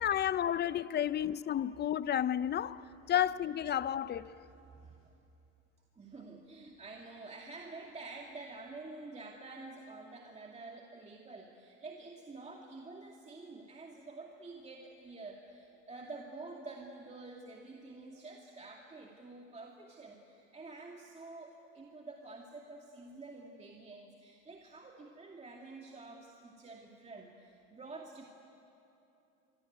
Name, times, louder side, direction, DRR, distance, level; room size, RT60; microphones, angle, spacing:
voice 1, 0.0-4.3, left 10 dB, 25° left, 0.6 m, -32 dB
voice 2, 4.7-5.1 5.9-28.2, right 3 dB, 15° right, 2.4 m, -49 dB
24.5 x 24.5 x 9.4 m
supercardioid pair, 110°, 40 cm